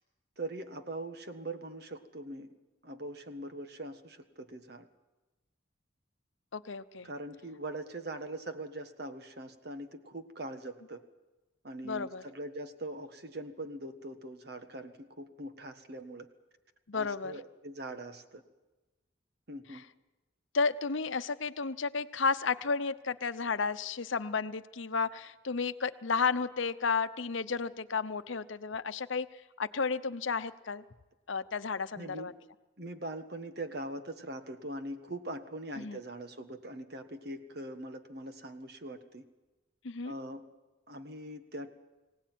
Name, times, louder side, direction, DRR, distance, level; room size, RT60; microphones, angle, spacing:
voice 1, 0.4-2.5 2.8-4.9 7.0-11.0 11.6-16.3 16.9-18.4 19.5-19.8 31.9-32.3 32.8-39.3 40.0-40.4 40.9-41.7, right 1 dB, 55° right, 8 dB, 1.6 m, -42 dB
voice 2, 6.5-7.1 11.8-12.2 16.9-17.4 20.5-29.3 29.6-30.8 31.3-32.3 35.8-36.0 39.8-40.1, left 5 dB, 75° left, 13 dB, 0.8 m, -32 dB
24.5 x 17.0 x 9.3 m, 1.1 s
head